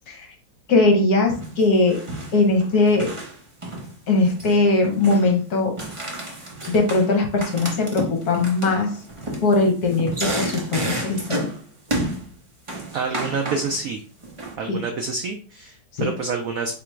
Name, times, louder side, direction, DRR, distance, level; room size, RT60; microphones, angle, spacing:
voice 1, 0.7-2.0 2.3-3.1 4.1-5.7 6.7-8.9 9.4-11.5 14.7-14.8 16.0-16.1, left 3 dB, 60° left, 2 dB, 1.4 m, -20 dB
sound 1, 1.3-1.6 1.9-3.3 3.6-4.6 4.8-5.4 5.8-7.1 7.4-11.6 11.9-12.3 12.7-13.8 14.2-14.5, right 1 dB, 40° right, 0.4 m, -31 dB
voice 2, 12.9-14.0 14.6-16.8, right 4 dB, 85° right, 4 dB, 0.7 m, -27 dB
3.6 x 2.9 x 4.5 m, 0.39 s
omnidirectional pair, 2.1 m